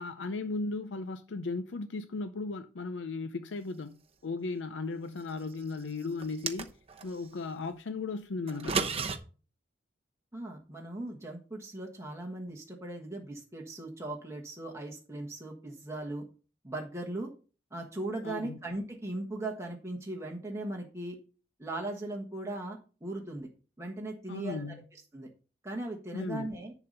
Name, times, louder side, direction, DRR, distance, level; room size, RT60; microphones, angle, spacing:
voice 1, 0.0-6.8 7.0-8.9 18.2-18.6 24.3-24.8 26.1-26.5, left 3 dB, 75° left, 0.6 m, -36 dB
sound 1, 6.2-7.1 8.5-9.2, right 5 dB, 35° right, 0.9 m, -32 dB
voice 2, 10.3-16.3 16.6-17.3 17.7-21.1 21.6-23.5 23.8-24.8 25.1-25.3 25.6-26.7, right 2 dB, 15° right, 1.4 m, -38 dB
10.5 x 4.0 x 6.6 m
head